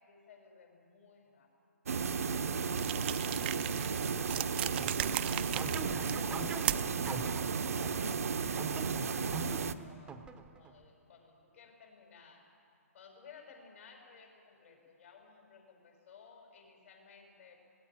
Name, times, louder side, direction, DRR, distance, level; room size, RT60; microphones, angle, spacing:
voice 1, 0.0-1.5 5.0-12.4 12.9-17.6, left 5 dB, 60° left, 2 dB, 6.4 m, -58 dB
sound 1, 1.9-9.7, right 5 dB, 70° right, 1.0 m, -34 dB
sound 2, 2.8-7.1, right 13 dB, 40° right, 0.6 m, -37 dB
sound 3, 4.8-10.7, right 4 dB, 10° right, 0.9 m, -45 dB
19.0 x 18.0 x 9.3 m, 2.5 s
hypercardioid pair, 140°, 8 cm